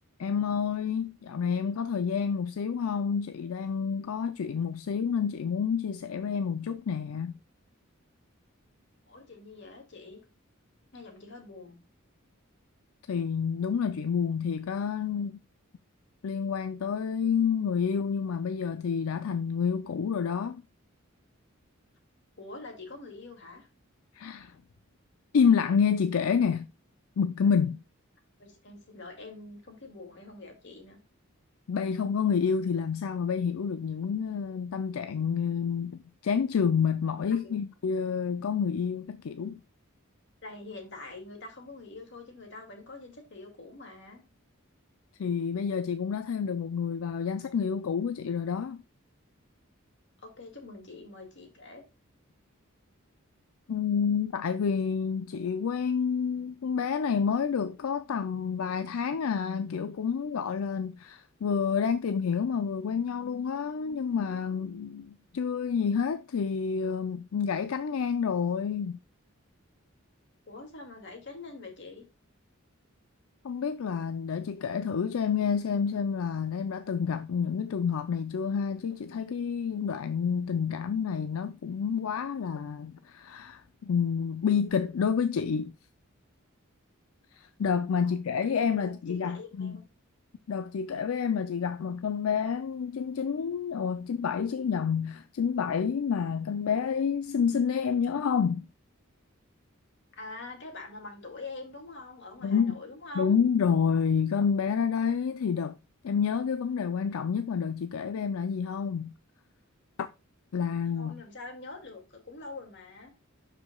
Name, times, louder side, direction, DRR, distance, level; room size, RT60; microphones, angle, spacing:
voice 1, 0.2-7.4 13.1-15.4 16.2-20.6 24.1-24.6 25.3-26.7 27.2-27.8 31.7-39.6 45.2-48.8 53.7-69.0 73.4-85.7 87.3-89.8 90.5-98.7 102.4-102.8 103.2-105.7 106.0-109.1 110.5-111.2, left 6 dB, 80° left, 0.4 m, -29 dB
voice 2, 9.1-10.2 10.9-11.8 22.4-23.7 28.4-31.0 37.4-37.6 40.4-44.2 50.2-51.8 70.5-72.0 88.0-88.1 88.8-89.8 100.1-103.4 111.0-113.1, left 3 dB, 60° left, 2.2 m, -45 dB
12.0 x 5.0 x 2.3 m
head